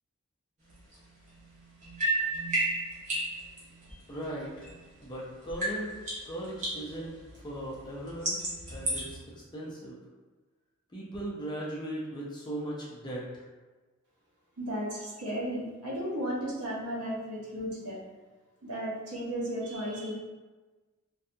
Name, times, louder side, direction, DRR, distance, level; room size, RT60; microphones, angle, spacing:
sound 1, 0.7-5.1 5.4-9.2, right 1 dB, 35° right, 0.8 m, -34 dB
voice 1, 4.1-4.7 5.0-5.9 6.2-7.1 7.4-8.4 8.7-9.9 10.9-13.3, right 1 dB, 20° left, -5 dB, 0.4 m, -38 dB
voice 2, 14.6-18.0 18.6-20.1, equal, 85° right, -4 dB, 0.8 m, -34 dB
2.6 x 2.3 x 2.5 m, 1.3 s
head